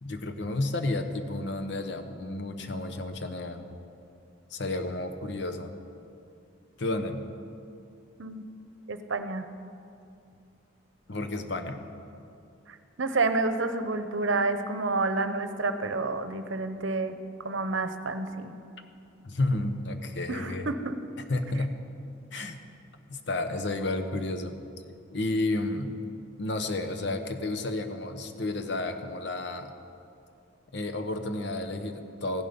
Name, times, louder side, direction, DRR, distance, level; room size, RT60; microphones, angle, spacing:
voice 1, 0.0-3.6 4.5-5.7 6.8-7.3 11.1-11.8 19.2-20.7 21.3-21.8 22.3-22.6 23.1-24.6 25.1-26.0 26.4-29.7 30.7-32.4, left 2 dB, 60° left, 7 dB, 0.9 m, -31 dB
voice 2, 8.9-9.5 12.7-17.2 17.4-18.5 20.3-21.0, right 3 dB, 70° right, 9 dB, 0.8 m, -29 dB
15.5 x 11.0 x 5.2 m, 2.5 s
head